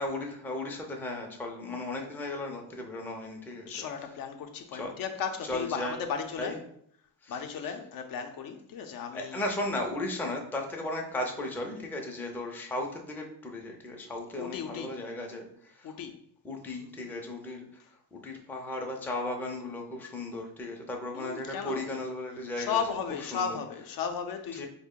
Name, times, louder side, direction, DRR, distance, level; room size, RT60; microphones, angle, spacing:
voice 1, 0.0-3.8 4.7-4.9 5.5-6.0 6.4-6.6 7.2-7.4 9.1-16.0 16.4-17.7 18.1-22.8 23.3-23.6 24.6-24.7, left 2 dB, 5° left, 1 dB, 0.4 m, -36 dB
voice 2, 3.7-6.6 7.3-9.4 14.4-14.9 15.8-16.2 17.8-17.9 21.1-21.9 22.6-24.7, left 6 dB, 60° left, 6 dB, 0.5 m, -35 dB
3.4 x 2.1 x 3.6 m, 0.66 s
cardioid pair, 110°, 40 cm